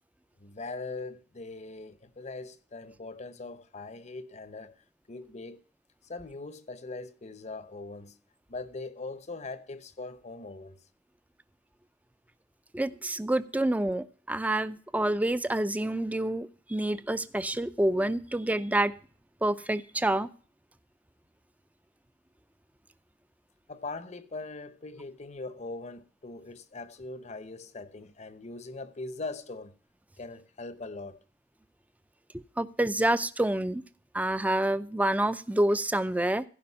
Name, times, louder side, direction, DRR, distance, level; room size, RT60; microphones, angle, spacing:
voice 1, 0.4-4.8 5.1-5.6 6.0-8.1 8.5-10.8 23.7-29.7 30.2-31.2, left 3 dB, 40° left, 0.8 m, -41 dB
voice 2, 12.7-18.9 19.4-20.3 32.3-33.8 34.1-36.4, right 1 dB, 10° right, 0.5 m, -28 dB
15.5 x 5.2 x 5.6 m
head